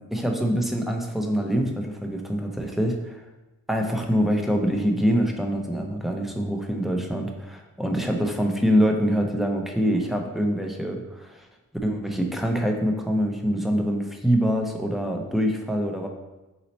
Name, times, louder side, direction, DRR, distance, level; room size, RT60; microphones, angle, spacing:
voice 1, 0.1-3.2 3.7-11.5 11.8-16.1, equal, ahead, 2 dB, 0.5 m, -25 dB
4.1 x 2.9 x 4.1 m, 1.1 s
wide cardioid pair, 95°, 35 cm